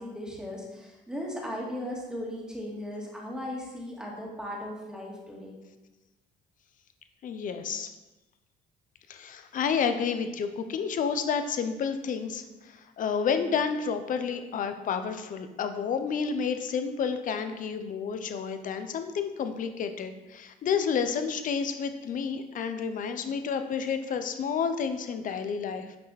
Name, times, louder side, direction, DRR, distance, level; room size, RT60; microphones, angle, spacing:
voice 1, 0.0-5.6, equal, 5° right, -3 dB, 2.2 m, -37 dB
voice 2, 7.2-7.9 9.1-26.0, left 6 dB, 50° left, 8 dB, 0.8 m, -30 dB
9.1 x 5.5 x 4.2 m, 1.1 s
cardioid pair, 110°, 17 cm